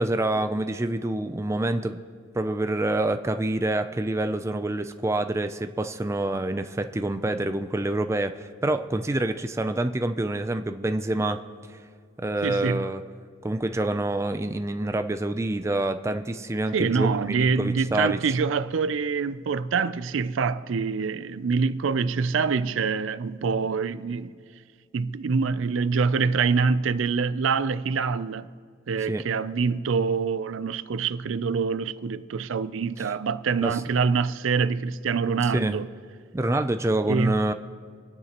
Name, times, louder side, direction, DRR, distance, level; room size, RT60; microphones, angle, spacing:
voice 1, 0.0-2.0 2.3-11.4 12.2-13.0 13.4-18.2 29.1-29.2 33.6-33.8 35.5-35.8 36.3-37.5, right 2 dB, 15° right, 0.4 m, -27 dB
voice 2, 12.4-12.9 16.7-24.3 24.9-28.5 28.9-35.9 37.0-37.4, right 5 dB, 80° right, 0.4 m, -25 dB
27.0 x 9.6 x 3.0 m
head